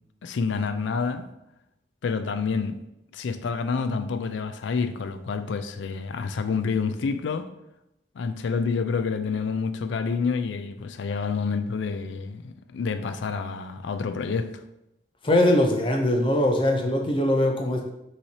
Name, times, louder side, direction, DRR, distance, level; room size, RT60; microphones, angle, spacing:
voice 1, 0.2-1.3 2.0-2.8 3.1-7.5 8.2-14.6, left 5 dB, 75° left, 0.4 m, -28 dB
voice 2, 15.2-17.9, left 1 dB, 25° left, 0.5 m, -21 dB
5.7 x 3.1 x 2.8 m
head